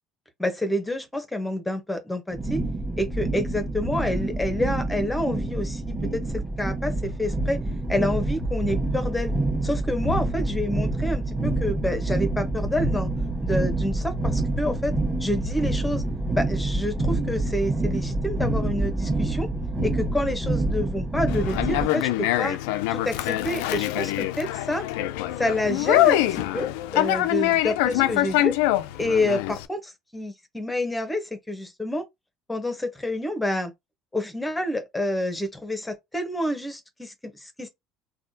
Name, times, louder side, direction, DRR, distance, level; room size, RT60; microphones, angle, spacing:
voice 1, 0.4-2.6 3.0-6.2 6.6-7.6 7.9-9.3 9.6-13.1 13.4-14.9 15.2-16.0 16.3-19.5 19.8-22.6 22.9-24.8 25.4-26.7 26.9-28.6 29.0-32.0 32.5-33.7 34.1-37.7, left 1 dB, 10° left, 0.9 m, -28 dB
sound 1, 2.3-21.8, right 2 dB, 10° right, 1.3 m, -27 dB
Conversation, 21.3-29.7, left 15 dB, 80° left, 0.3 m, -24 dB
3.5 x 2.3 x 2.7 m
hypercardioid pair, 75°, 0 cm